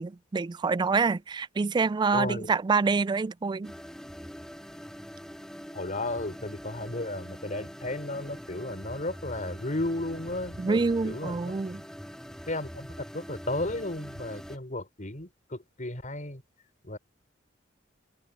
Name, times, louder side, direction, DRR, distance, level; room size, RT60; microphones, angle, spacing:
voice 1, 0.0-3.7 10.6-11.8, right 4 dB, 25° right, 0.3 m, -26 dB
voice 2, 2.1-2.5 5.7-11.6 12.5-12.9 13.1-16.4 16.8-17.0, left 2 dB, 40° left, 5.2 m, -34 dB
sound 1, 3.6-14.6, equal, 5° left, 2.3 m, -44 dB
open air
head